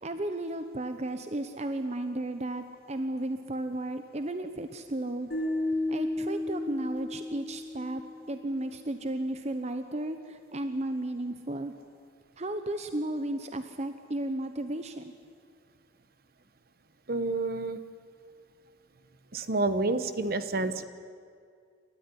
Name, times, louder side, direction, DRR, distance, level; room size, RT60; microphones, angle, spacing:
voice 1, 0.0-5.3 5.9-8.0 8.3-11.7 12.4-15.1, right 1 dB, 40° right, 8 dB, 0.9 m, -34 dB
sound 1, 5.3-8.5, left 2 dB, 60° left, 5.2 m, -33 dB
voice 2, 17.1-17.8 19.3-20.8, right 2 dB, 55° right, 12 dB, 1.2 m, -29 dB
29.0 x 13.5 x 9.9 m, 2.2 s
head